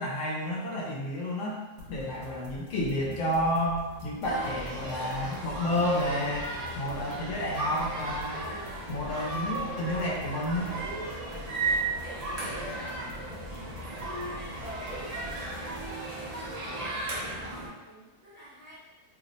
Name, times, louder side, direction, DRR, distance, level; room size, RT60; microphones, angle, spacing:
voice 1, 0.0-1.6 1.9-8.5 8.9-10.7, left 1 dB, 70° left, -3 dB, 0.9 m, -30 dB
sound 1, 1.8-15.9, left 1 dB, 75° right, 1.1 m, -46 dB
sound 2, 4.2-17.7, right 2 dB, 50° right, 0.4 m, -35 dB
voice 2, 11.8-12.9 13.2-15.8 16.0-18.8, equal, 35° right, -11 dB, 0.8 m, -51 dB
2.7 x 2.0 x 3.9 m, 1.1 s
omnidirectional pair, 1.4 m